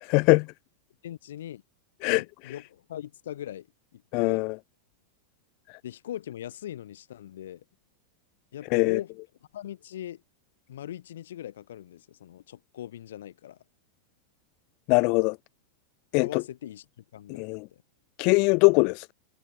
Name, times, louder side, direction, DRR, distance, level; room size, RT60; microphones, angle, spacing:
voice 1, 0.0-0.5 2.0-2.5 4.1-4.5 8.7-9.0 14.9-15.4 16.1-16.4 17.4-17.6 18.2-19.1, left 32 dB, 45° left, 0.4 m, -22 dB
voice 2, 1.0-1.6 2.0-3.7 3.9-4.4 5.8-7.6 8.5-9.1 9.5-10.2 10.7-13.6 16.2-16.8 17.1-17.8, left 11 dB, 60° left, 4.0 m, -40 dB
figure-of-eight pair, 90°, 0 cm